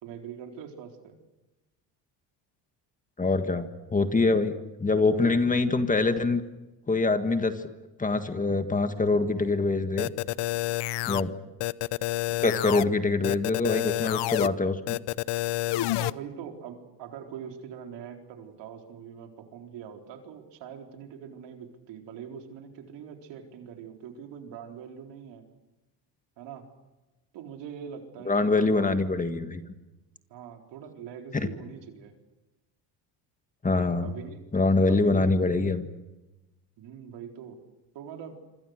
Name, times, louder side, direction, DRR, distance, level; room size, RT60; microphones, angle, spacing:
voice 1, 0.0-1.2 11.0-11.3 16.0-25.5 26.4-26.6 27.3-28.9 30.3-32.1 34.0-34.4 34.9-35.4 36.8-37.6 37.9-38.3, right 8 dB, 75° right, 3 dB, 4.2 m, -43 dB
voice 2, 3.2-6.4 6.9-7.5 8.0-10.1 11.1-11.3 12.4-15.0 28.3-29.6 31.3-31.5 33.6-34.1 34.5-35.9, left 3 dB, 20° left, 8 dB, 1.8 m, -24 dB
sound 1, 10.0-11.2 11.6-12.8 13.2-14.5 14.9-16.1, left 17 dB, 65° left, 0.8 m, -28 dB
26.5 x 26.0 x 6.6 m, 1.1 s
cardioid pair, 120°, 44 cm